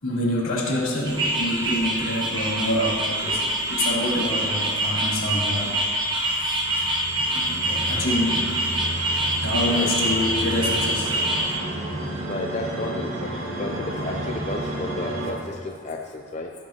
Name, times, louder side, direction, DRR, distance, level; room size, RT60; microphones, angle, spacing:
voice 1, 0.0-5.8 6.4-6.6 7.3-8.6 9.3-11.1, left 1 dB, 80° left, -6 dB, 2.8 m, -26 dB
sound 1, 1.1-11.6, right 1 dB, 20° right, 1.4 m, -25 dB
sound 2, 5.8-15.3, right 1 dB, 80° right, 1.9 m, -32 dB
voice 2, 12.2-13.3 13.6-16.5, left 2 dB, 35° left, 1 dB, 0.6 m, -32 dB
16.0 x 8.4 x 2.9 m, 2.3 s
head